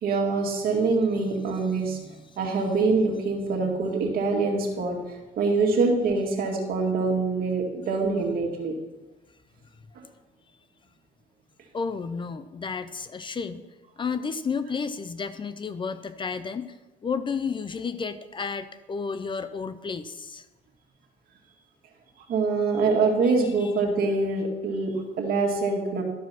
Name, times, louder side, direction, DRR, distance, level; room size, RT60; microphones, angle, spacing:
voice 1, 0.0-8.7 10.0-10.1 22.3-26.0, right 3 dB, 60° right, 1 dB, 2.2 m, -25 dB
voice 2, 11.7-13.7 14.0-16.7 17.0-20.4 23.2-23.3 23.6-23.7, left 5 dB, 30° left, 12 dB, 0.5 m, -32 dB
12.5 x 4.7 x 6.0 m, 1.1 s
cardioid pair, 110°, 17 cm